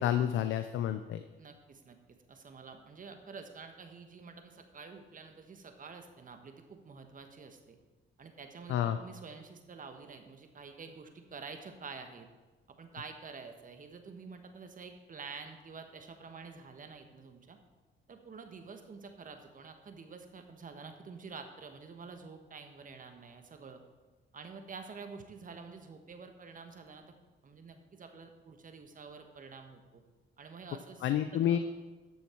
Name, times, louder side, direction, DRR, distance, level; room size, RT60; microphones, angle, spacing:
voice 1, 0.0-1.2 8.7-9.0 31.0-31.6, left 10 dB, 75° left, 9 dB, 0.5 m, -29 dB
voice 2, 1.4-7.8 8.2-12.3 12.8-17.6 18.1-23.8 24.3-27.1 27.4-30.0 30.4-31.6, right 5 dB, 45° right, 6 dB, 1.3 m, -48 dB
12.5 x 6.4 x 4.5 m, 1.2 s
cardioid pair, 90°, 20 cm